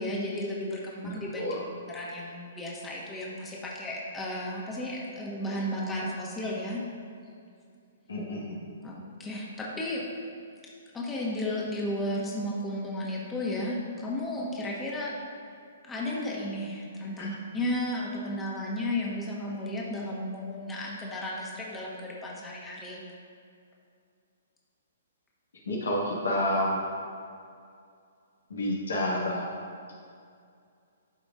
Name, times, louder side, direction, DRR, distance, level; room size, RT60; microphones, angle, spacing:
voice 1, 0.0-1.5 1.9-6.8 8.8-8.9 9.2-10.0 10.9-15.1 15.8-23.0, left 1 dB, 15° left, -4 dB, 1.5 m, -33 dB
voice 2, 1.0-1.6 8.1-8.7 17.2-17.3 25.6-26.9 28.5-29.6, left 1 dB, 80° left, -3 dB, 1.7 m, -30 dB
12.5 x 5.0 x 2.5 m, 2.4 s
hypercardioid pair, 130°, 0 cm